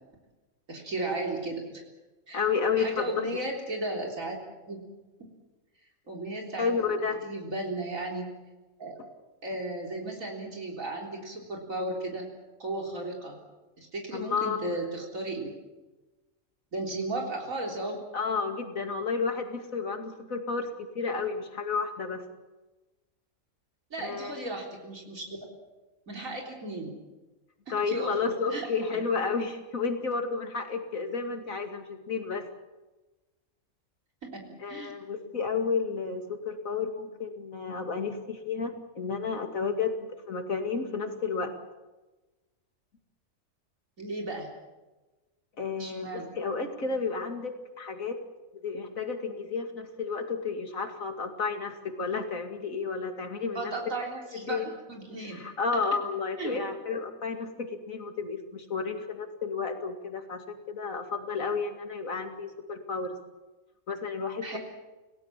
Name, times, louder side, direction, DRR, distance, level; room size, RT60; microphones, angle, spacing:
voice 1, 0.7-1.8 2.3-2.4 2.8-4.4 4.7-4.8 6.1-6.7 7.2-8.3 8.8-9.0 9.4-12.3 12.6-13.4 13.8-15.5 16.7-18.0 23.9-25.3 26.1-27.0 27.9-28.7 34.2-34.9 44.0-44.5 45.8-46.3 53.5-55.4 56.4-56.6 64.4-64.6, right 2 dB, 70° right, 0 dB, 4.1 m, -35 dB
voice 2, 2.3-3.3 6.6-7.2 14.1-14.7 18.1-22.2 24.0-24.4 27.7-32.5 34.6-41.6 45.6-48.2 48.5-53.7 54.3-54.6 55.2-63.2 63.9-64.6, left 5 dB, 75° left, 5 dB, 2.8 m, -31 dB
28.0 x 17.5 x 7.4 m, 1.2 s
omnidirectional pair, 1.4 m